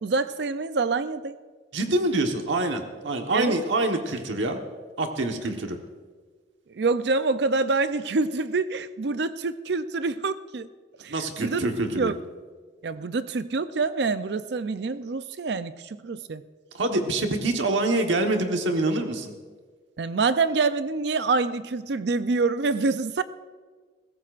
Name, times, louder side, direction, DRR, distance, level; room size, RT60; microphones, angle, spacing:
voice 1, 0.0-1.4 3.3-3.6 6.7-10.7 11.0-11.6 12.0-12.2 12.8-16.4 20.0-23.2, right 3 dB, 65° right, 13 dB, 0.5 m, -26 dB
voice 2, 1.7-4.6 5.0-5.8 11.1-12.1 16.7-19.3, right 2 dB, 85° right, 4 dB, 1.2 m, -25 dB
20.5 x 16.5 x 2.5 m, 1.5 s
head